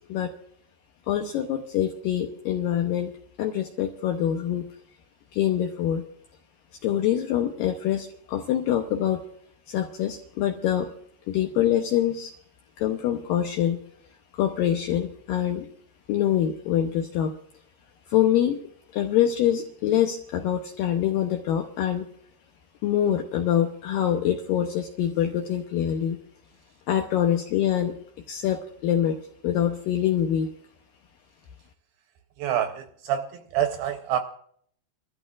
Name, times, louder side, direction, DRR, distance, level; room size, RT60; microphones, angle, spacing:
voice 1, 1.1-3.1 3.4-4.7 5.3-6.0 6.8-9.2 9.7-10.9 11.3-12.3 12.8-13.8 14.3-15.7 16.1-17.3 18.1-18.6 18.9-22.1 22.8-26.2 26.9-27.9 28.3-29.2 29.4-30.5, left 10 dB, 80° left, 4 dB, 2.0 m, -25 dB
voice 2, 32.4-34.2, right 10 dB, 80° right, 6 dB, 2.3 m, -27 dB
29.0 x 13.0 x 2.4 m, 0.62 s
omnidirectional pair, 4.9 m